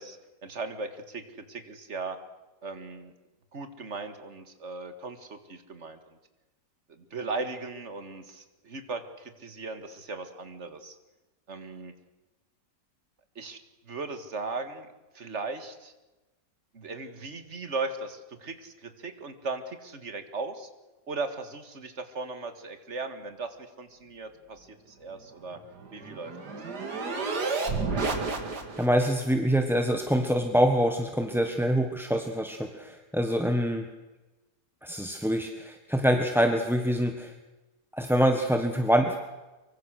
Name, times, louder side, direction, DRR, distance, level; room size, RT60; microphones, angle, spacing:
voice 1, 0.0-2.2 2.6-3.1 3.5-6.2 7.0-11.0 11.5-11.9 13.4-13.6 13.9-14.9 15.1-15.9 16.7-20.7 21.1-25.6 25.9-26.5 31.5-31.6, right 3 dB, 40° right, 8 dB, 2.1 m, -37 dB
sound 1, 25.4-29.1, right 4 dB, 65° right, 3.0 m, -31 dB
voice 2, 28.8-33.9 34.8-37.3 37.9-39.2, equal, ahead, 5 dB, 1.1 m, -25 dB
24.5 x 23.5 x 6.5 m, 1.1 s
omnidirectional pair, 1.9 m